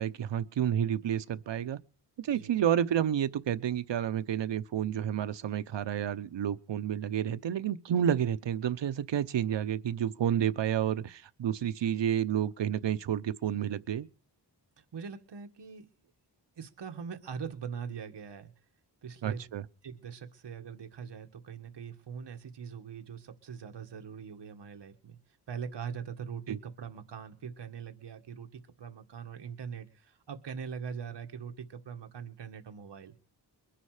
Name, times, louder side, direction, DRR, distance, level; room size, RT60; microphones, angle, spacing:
voice 1, 0.0-1.8 2.2-14.1 19.2-19.6 26.5-26.6, right 9 dB, 90° right, 0.9 m, -30 dB
voice 2, 2.3-2.6 14.8-15.9 16.6-18.5 19.0-19.5 19.8-25.2 25.5-33.2, right 6 dB, 75° right, 1.7 m, -42 dB
22.5 x 10.0 x 5.0 m
wide cardioid pair, 155°, 42 cm